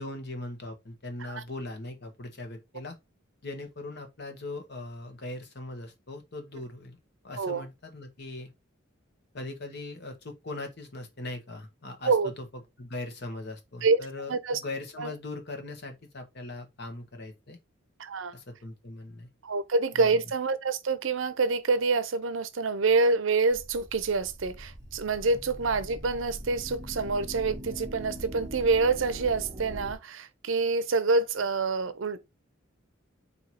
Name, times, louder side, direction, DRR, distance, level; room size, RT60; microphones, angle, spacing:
voice 1, 0.0-3.0 3.4-7.0 7.2-8.5 9.3-12.5 12.8-17.6 18.3-19.3 19.9-20.2, left 2 dB, 55° left, 1.1 m, -40 dB
voice 2, 14.3-14.6 15.0-15.1 18.0-18.3 19.4-32.2, right 4 dB, 70° right, 0.6 m, -26 dB
sound 1, 23.5-29.9, equal, 20° right, 0.8 m, -42 dB
4.6 x 2.8 x 4.0 m
head